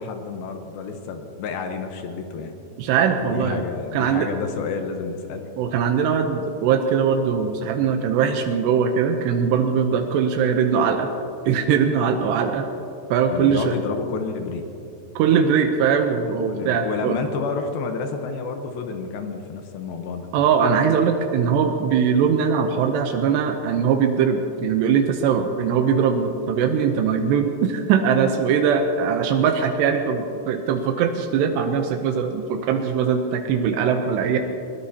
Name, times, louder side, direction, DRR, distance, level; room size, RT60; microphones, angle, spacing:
voice 1, 0.0-2.5 3.1-5.5 13.3-14.6 16.5-20.3, left 5 dB, 75° left, 5 dB, 2.6 m, -30 dB
voice 2, 2.8-3.6 3.9-4.3 5.6-11.1 11.5-12.7 13.1-13.7 15.2-17.2 20.3-34.4, right 7 dB, 85° right, 5 dB, 2.9 m, -21 dB
21.5 x 19.0 x 2.8 m, 2.8 s
omnidirectional pair, 4.8 m